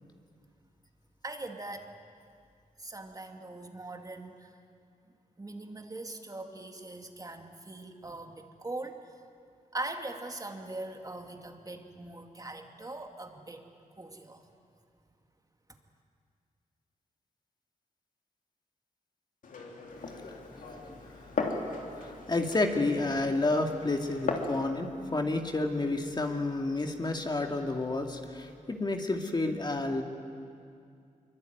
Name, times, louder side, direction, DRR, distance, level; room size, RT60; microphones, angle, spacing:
voice 1, 1.2-1.9 2.8-4.5 5.4-9.1 9.7-13.6 13.9-14.4, right 2 dB, 25° right, 4 dB, 2.3 m, -41 dB
Glass, 19.4-24.6, left 4 dB, 75° left, 3.3 m, -37 dB
voice 2, 19.9-21.2 22.0-30.0, left 2 dB, 30° left, 3 dB, 2.4 m, -31 dB
24.0 x 23.5 x 9.4 m, 2.4 s
cardioid pair, 80°, 14 cm